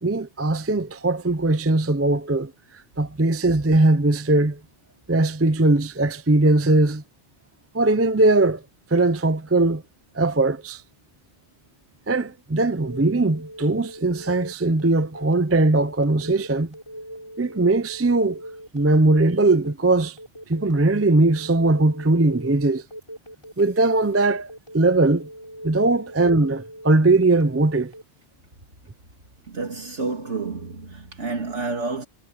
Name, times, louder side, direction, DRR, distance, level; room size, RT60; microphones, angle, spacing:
voice 1, 0.0-2.5 3.0-4.6 5.1-7.0 7.7-8.6 8.9-9.8 10.1-10.8 12.1-16.7 17.4-18.4 18.7-20.2 20.5-22.8 23.6-25.3 25.6-27.9, right 2 dB, 15° right, 0.5 m, -20 dB
Telephone, 12.8-28.0, equal, 25° left, 6.4 m, -40 dB
voice 2, 29.5-32.1, right 3 dB, 70° right, 2.7 m, -29 dB
omnidirectional pair, 1.2 m